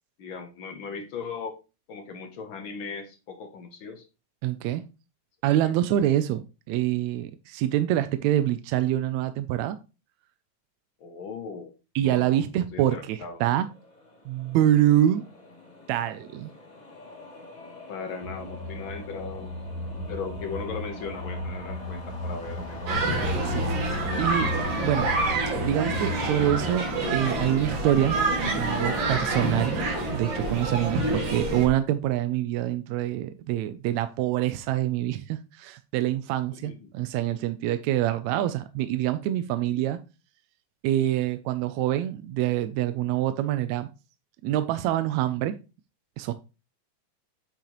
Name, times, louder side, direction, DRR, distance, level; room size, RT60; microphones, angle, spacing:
voice 1, 0.2-1.6 1.9-4.0 5.6-5.7 11.0-13.4 17.9-19.5 20.1-22.9 36.6-36.9, left 5 dB, 65° left, 6 dB, 1.2 m, -38 dB
voice 2, 4.4-4.8 5.4-9.8 12.0-13.7 14.3-15.2 15.9-16.5 23.4-23.7 24.2-24.5 24.8-25.1 25.6-40.0 40.8-43.9 44.4-45.5 46.2-46.3, right 13 dB, 80° right, 11 dB, 1.8 m, -26 dB
sound 1, 13.1-27.4, left 2 dB, 15° left, 2.1 m, -45 dB
sound 2, 18.2-26.7, left 1 dB, 45° left, 1.8 m, -34 dB
sound 3, 22.9-31.7, right 2 dB, 55° right, 2.9 m, -27 dB
8.6 x 6.1 x 3.0 m, 0.30 s
omnidirectional pair, 3.4 m